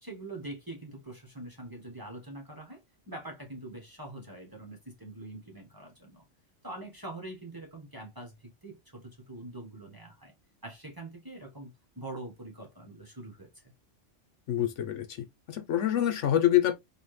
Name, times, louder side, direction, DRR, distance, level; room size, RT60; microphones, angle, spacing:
voice 1, 0.0-6.2 6.6-10.3 10.6-13.7, right 2 dB, 20° right, 1.1 m, -44 dB
voice 2, 14.5-15.2 15.5-16.7, left 12 dB, 75° left, 1.0 m, -26 dB
4.2 x 2.7 x 3.2 m
omnidirectional pair, 1.3 m